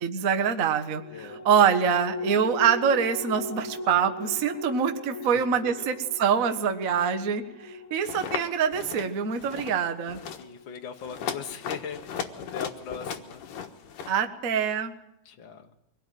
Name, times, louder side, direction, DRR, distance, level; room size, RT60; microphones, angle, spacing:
voice 1, 0.0-10.2 14.1-14.9, right 7 dB, 70° right, 8 dB, 0.8 m, -25 dB
sound 1, 0.8-11.6 12.0-12.1, left 1 dB, 20° left, 1.1 m, -39 dB
voice 2, 1.1-1.4 5.2-5.9 10.4-13.4 15.2-15.7, left 7 dB, 60° left, 4 dB, 1.3 m, -40 dB
sound 2, 8.0-8.4 8.7-9.1 9.4-9.8 10.1-10.4 11.0-14.2, left 7 dB, 90° left, 3.1 m, -36 dB
24.0 x 18.0 x 9.2 m, 0.82 s
omnidirectional pair, 3.7 m